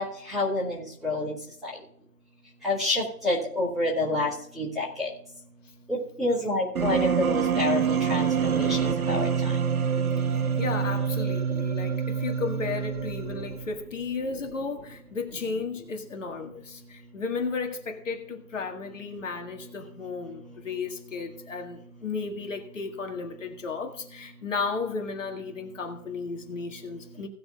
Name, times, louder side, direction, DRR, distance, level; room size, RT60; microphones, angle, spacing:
voice 1, 0.0-1.4 1.6-1.7 2.6-4.3 4.6-5.1 5.9-9.3, left 2 dB, ahead, 2.2 m, -28 dB
sound 1, 6.8-13.8, right 7 dB, 65° right, 1.2 m, -26 dB
voice 2, 10.3-27.3, left 4 dB, 50° left, 1.9 m, -34 dB
17.5 x 7.0 x 3.6 m
hypercardioid pair, 165°, 47 cm